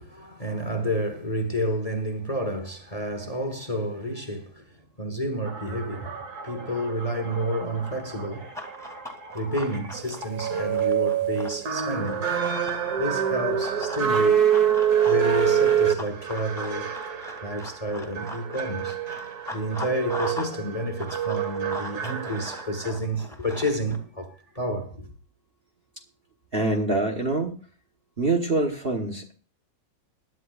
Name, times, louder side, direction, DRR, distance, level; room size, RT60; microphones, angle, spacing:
voice 1, 0.0-4.7 5.0-6.1 6.4-8.7 9.3-12.2 13.0-14.4 15.0-16.9 17.4-19.0 19.5-25.1, equal, 20° left, 1.3 m, -30 dB
sound 1, 5.4-22.9, right 8 dB, 60° right, 2.1 m, -27 dB
Run, 8.5-12.8 13.6-20.6 20.8-24.0, left 1 dB, ahead, 2.5 m, -39 dB
voice 2, 26.5-27.6 28.2-29.3, right 2 dB, 35° right, 1.3 m, -25 dB
21.5 x 10.5 x 2.5 m
omnidirectional pair, 1.9 m